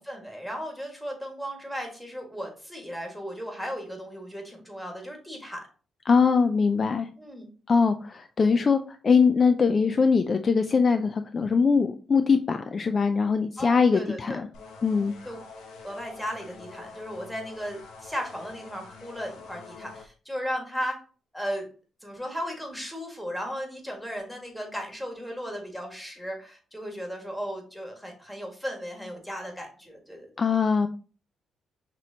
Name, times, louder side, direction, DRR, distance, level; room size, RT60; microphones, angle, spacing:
voice 1, 0.1-5.6 7.1-7.5 13.6-14.4 15.2-15.4 15.8-21.0 21.3-21.7 22.0-30.3, equal, 5° left, 1 dB, 1.6 m, -36 dB
voice 2, 6.1-7.1 7.7-8.8 9.0-14.5 14.8-15.1 30.4-30.9, left 5 dB, 40° left, 8 dB, 0.3 m, -22 dB
sound 1, 14.5-20.1, left 4 dB, 90° left, 0.8 m, -46 dB
6.0 x 2.9 x 2.7 m, 0.38 s
cardioid pair, 90°, 0 cm